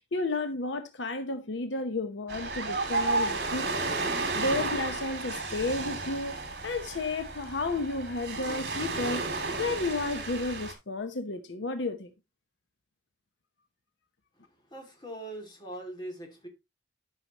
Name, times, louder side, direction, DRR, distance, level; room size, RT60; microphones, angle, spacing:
voice 1, 0.0-3.8 4.4-6.4 6.6-9.2 9.6-12.1, left 3 dB, 85° left, 0.8 m, -32 dB
Ocean, 2.3-10.7, right 3 dB, 60° right, 2.4 m, -32 dB
voice 2, 14.3-16.5, right 1 dB, 25° left, 2.4 m, -42 dB
11.5 x 5.7 x 2.9 m
head